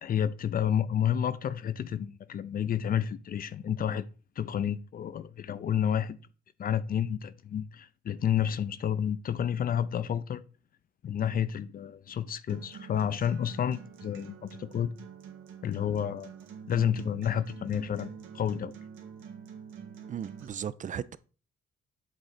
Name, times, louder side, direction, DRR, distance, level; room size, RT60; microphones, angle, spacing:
voice 1, 0.0-4.1 4.4-6.2 6.6-10.4 11.0-14.9 15.6-16.3 16.7-18.7, left 9 dB, 45° left, 0.5 m, -30 dB
Acoustic guitar, 12.5-20.5, right 7 dB, 80° right, 1.3 m, -47 dB
voice 2, 20.1-21.2, right 8 dB, 40° right, 0.4 m, -36 dB
7.8 x 3.7 x 4.2 m
cardioid pair, 90°, 20 cm